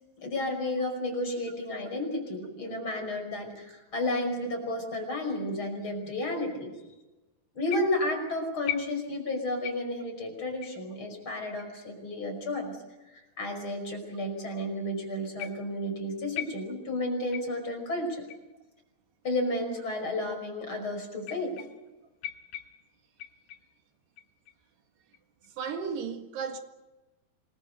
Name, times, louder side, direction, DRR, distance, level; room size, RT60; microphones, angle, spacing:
voice 1, 0.2-6.7 7.5-12.8 13.1-18.3 19.2-21.6, left 1 dB, 30° left, 6.1 m, -32 dB
sound 1, 7.7-8.2 8.7-9.3 9.6-10.0 10.6-10.8 11.6-11.7 12.6-12.7 13.5-13.6 15.4-15.8 16.4-17.0 17.3-17.7 18.3-18.5 19.3-19.4 20.2-20.3 21.2-21.9 22.2-23.8 24.2-24.6 25.1-25.5, left 12 dB, 70° left, 3.1 m, -40 dB
voice 2, 25.6-26.6, right 6 dB, 75° right, 3.8 m, -34 dB
27.0 x 22.5 x 6.8 m
omnidirectional pair, 4.8 m